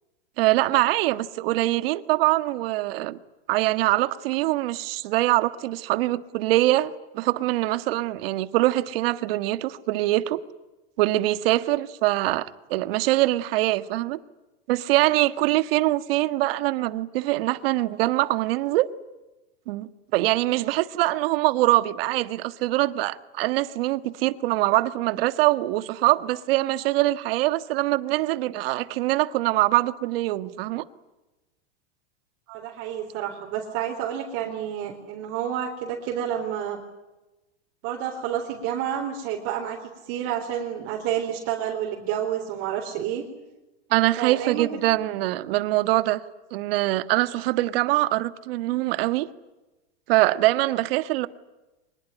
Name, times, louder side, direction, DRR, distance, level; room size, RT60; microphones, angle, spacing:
voice 1, 0.4-3.2 3.5-10.4 11.0-14.2 14.7-18.9 19.7-30.8 43.9-46.2 46.5-49.3 50.1-51.3, right 17 dB, 60° right, 1.6 m, -23 dB
voice 2, 32.5-36.8 37.8-43.2 44.2-44.7, right 9 dB, 45° right, 4.3 m, -29 dB
24.5 x 21.5 x 9.9 m
supercardioid pair, 135°, 32 cm